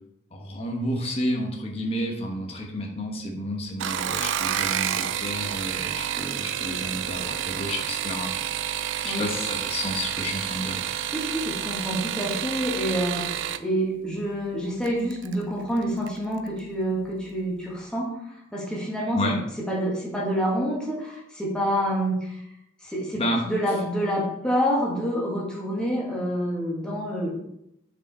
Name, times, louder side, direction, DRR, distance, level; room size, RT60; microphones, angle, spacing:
voice 1, 0.3-8.5 9.0-10.8 19.1-19.4 23.1-23.4, equal, 30° left, 0 dB, 1.1 m, -31 dB
sound 1, 3.7-13.6 14.8-15.3 15.8-16.2 16.5-16.6, right 10 dB, 75° right, 0.4 m, -29 dB
voice 2, 11.1-19.2 19.7-22.4 22.8-27.3, equal, 5° left, -4 dB, 1.8 m, -27 dB
6.6 x 4.9 x 4.3 m, 0.78 s
head